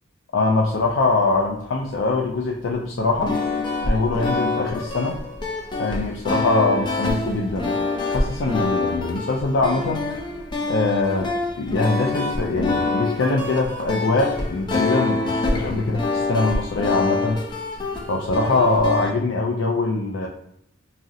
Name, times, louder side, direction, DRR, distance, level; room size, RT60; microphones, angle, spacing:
voice 1, 0.3-3.3 3.9-5.2 5.8-7.8 8.1-10.1 10.7-11.3 11.6-17.4 18.1-20.3, left 3 dB, 85° left, 0 dB, 0.4 m, -22 dB
sound 1, 3.1-19.1, left 2 dB, 25° left, 0.4 m, -26 dB
2.6 x 2.0 x 3.6 m, 0.79 s
head